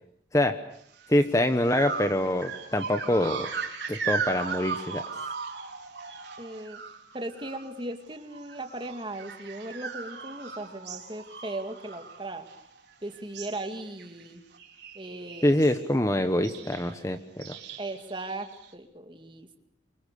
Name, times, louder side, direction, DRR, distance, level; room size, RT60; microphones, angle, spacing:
sound 1, 1.0-1.2 1.7-7.8 8.1-12.9 13.1-13.7 14.0-14.3 14.5-15.8 16.4-16.9 17.4-18.7, right 5 dB, 70° right, 4.2 m, -37 dB
voice 1, 1.1-3.5 3.9-5.0 15.4-17.6, left 1 dB, 15° left, 9 dB, 1.1 m, -25 dB
voice 2, 6.4-6.8 7.1-12.5 13.0-14.4 14.9-15.9 17.8-19.6, right 2 dB, 25° right, 6 dB, 2.2 m, -38 dB
28.5 x 24.5 x 6.8 m, 0.71 s
head